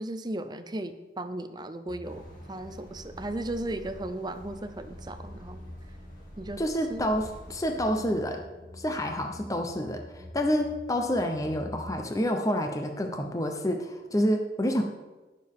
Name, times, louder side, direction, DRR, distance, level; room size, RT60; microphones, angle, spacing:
voice 1, 0.0-5.6 6.4-6.6 6.9-7.1, right 1 dB, 25° right, 10 dB, 0.6 m, -36 dB
sound 1, 1.9-11.9, left 1 dB, 45° right, 1.8 m, -47 dB
sound 2, 2.0-8.2, equal, 45° left, 2.5 m, -49 dB
voice 2, 6.6-8.4 8.8-14.8, equal, 20° left, 4 dB, 0.7 m, -28 dB
19.0 x 6.7 x 3.6 m, 1.2 s
head